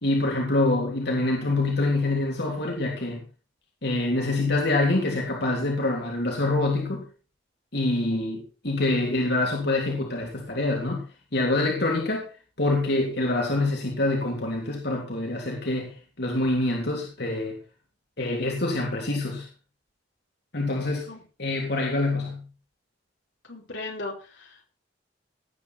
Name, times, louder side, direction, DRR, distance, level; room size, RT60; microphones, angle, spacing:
voice 1, 0.0-3.2 3.8-7.1 7.7-11.0 11.3-12.3 12.6-17.6 18.2-19.5 20.5-21.1 21.4-22.5, left 2 dB, 65° left, 0 dB, 3.3 m, -25 dB
voice 2, 23.5-24.7, left 2 dB, 85° left, 0 dB, 5.0 m, -37 dB
18.0 x 8.8 x 4.4 m, 0.35 s
head